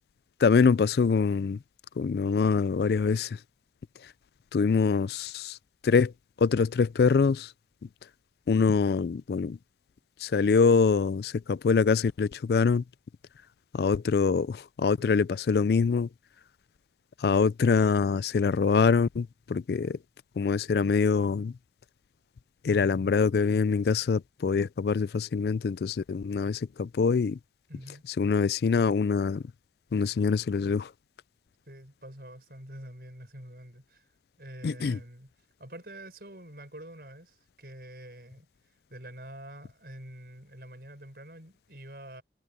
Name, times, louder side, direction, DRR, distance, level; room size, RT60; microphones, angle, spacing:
voice 1, 0.4-1.6 2.0-3.4 4.5-5.6 5.8-6.1 6.4-7.5 8.5-9.6 10.2-12.8 13.7-16.1 17.2-20.0 20.4-21.5 22.6-27.4 28.2-29.4 29.9-30.9 34.6-35.0, left 5 dB, 65° left, 0.4 m, -24 dB
voice 2, 27.7-28.0 31.7-34.1 34.4-35.3 35.6-42.2, right 1 dB, 60° right, 6.3 m, -46 dB
head